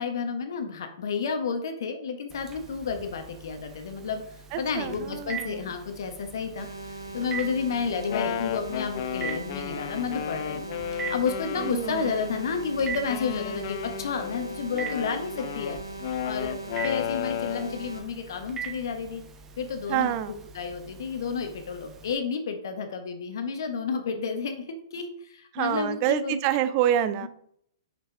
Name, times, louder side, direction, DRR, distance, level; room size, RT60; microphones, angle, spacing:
voice 1, 0.0-4.2 4.6-10.7 11.1-15.8 16.2-16.6 16.8-19.2 19.6-20.1 20.5-24.6 24.9-26.4 27.1-27.3, left 5 dB, 70° left, 6 dB, 1.1 m, -31 dB
Telephone, 2.3-22.1, right 6 dB, 20° right, 0.8 m, -42 dB
voice 2, 4.5-5.7 11.6-12.1 19.9-20.4 25.5-27.3, right 11 dB, 40° right, 14 dB, 0.4 m, -27 dB
sound 1, 6.6-18.0, right 3 dB, 90° right, 1.6 m, -40 dB
Wind instrument woodwind instrument, 7.9-12.6 13.1-17.8, left 10 dB, 50° left, 0.5 m, -34 dB
5.9 x 5.4 x 3.4 m, 0.69 s
hypercardioid pair, 120°, 2 cm